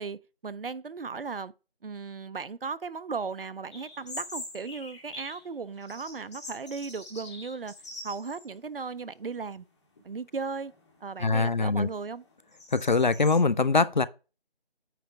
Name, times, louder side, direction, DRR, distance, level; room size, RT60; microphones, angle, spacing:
voice 1, 0.0-1.5 1.8-7.7 8.0-9.7 10.0-10.7 11.0-12.2, right 5 dB, 65° right, 0.6 m, -36 dB
sound 1, 3.7-5.5 5.8-8.5 8.9-9.0 9.7-10.1 10.6-13.4, left 2 dB, 30° left, 1.8 m, -44 dB
voice 2, 11.2-11.9 12.7-14.1, left 4 dB, 50° left, 0.5 m, -23 dB
9.2 x 3.2 x 5.8 m
figure-of-eight pair, 160°, 30 cm